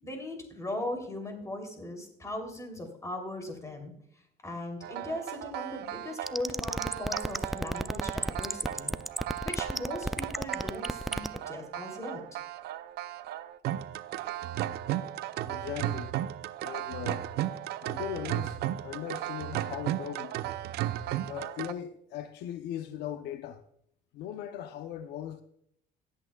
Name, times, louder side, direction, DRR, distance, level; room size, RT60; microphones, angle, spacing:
voice 1, 0.0-3.9 4.4-8.9 9.4-12.4, left 1 dB, 20° left, 3.1 m, -38 dB
sound 1, 4.8-21.7, right 13 dB, 70° right, 0.5 m, -35 dB
sound 2, 6.3-11.4, equal, ahead, 0.3 m, -31 dB
voice 2, 15.5-16.1 16.6-17.3 17.8-18.6 18.8-20.3 21.3-23.6 24.1-25.4, left 10 dB, 85° left, 0.7 m, -38 dB
18.0 x 8.4 x 2.3 m
cardioid pair, 110°, 17 cm